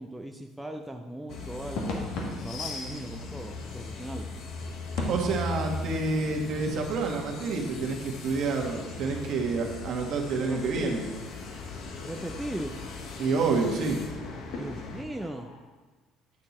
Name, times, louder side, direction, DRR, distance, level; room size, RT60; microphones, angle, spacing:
voice 1, 0.0-2.1 2.4-4.3 10.5-11.0 12.0-12.8 14.4-15.5, right 1 dB, 5° right, 2 dB, 0.4 m, -38 dB
sound 1, 1.3-15.0, left 3 dB, 55° left, 1.1 m, -39 dB
sound 2, 1.7-7.5 7.8-7.9 9.7-10.0 10.2-15.6, left 2 dB, 75° left, 1.8 m, -41 dB
voice 2, 5.1-11.0 13.2-14.0, right 4 dB, 50° right, 1 dB, 1.5 m, -28 dB
9.8 x 6.6 x 4.2 m, 1.3 s
cardioid pair, 170°, 0 cm